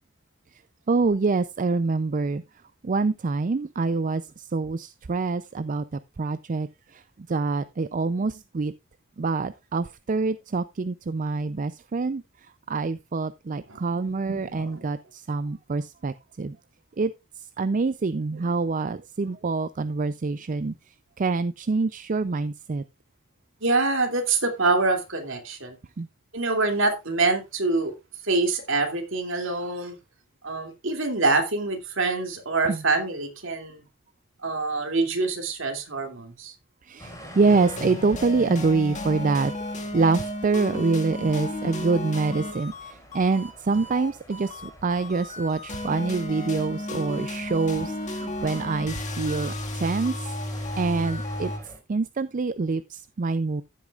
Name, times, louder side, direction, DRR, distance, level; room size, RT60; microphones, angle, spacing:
voice 1, 0.9-2.4 2.8-5.8 6.2-7.0 7.3-8.7 9.2-16.6 17.0-17.1 17.6-20.7 21.2-22.8 26.0-26.1 32.7-32.8 36.8-39.5 39.9-50.2 50.8-51.5 51.9-53.6, right 4 dB, 40° right, 0.4 m, -26 dB
voice 2, 13.7-14.8 23.6-25.8 26.3-27.9 28.2-30.0 30.4-33.8 34.4-36.5 43.7-43.8, right 3 dB, 65° right, 2.6 m, -26 dB
sound 1, 37.0-51.8, left 1 dB, 15° left, 5.1 m, -47 dB
sound 2, 37.5-51.6, left 1 dB, 35° left, 1.8 m, -33 dB
15.0 x 8.2 x 2.4 m
head